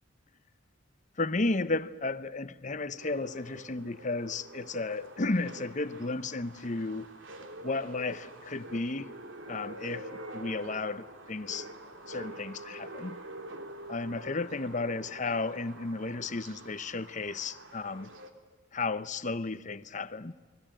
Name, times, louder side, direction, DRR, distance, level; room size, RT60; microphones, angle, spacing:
voice 1, 1.2-7.1 7.6-9.1 9.5-11.7 12.1-13.2 13.9-18.1 18.7-20.3, left 3 dB, 40° left, 0.9 m, -33 dB
sound 1, 3.0-18.3, right 1 dB, 75° right, 2.7 m, -46 dB
29.0 x 21.0 x 9.0 m
head